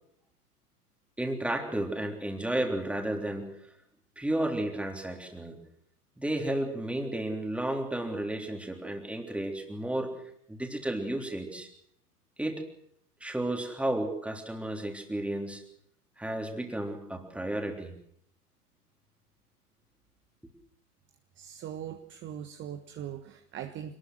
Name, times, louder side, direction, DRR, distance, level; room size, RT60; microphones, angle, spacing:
voice 1, 1.2-3.5 4.2-5.6 6.2-10.1 10.5-11.7 12.4-12.6 13.2-15.6 16.2-17.9, right 1 dB, 5° right, 3 dB, 3.5 m, -32 dB
voice 2, 21.4-23.9, right 10 dB, 25° right, 7 dB, 1.5 m, -40 dB
27.0 x 20.0 x 6.3 m, 0.72 s
figure-of-eight pair, 100°, 47 cm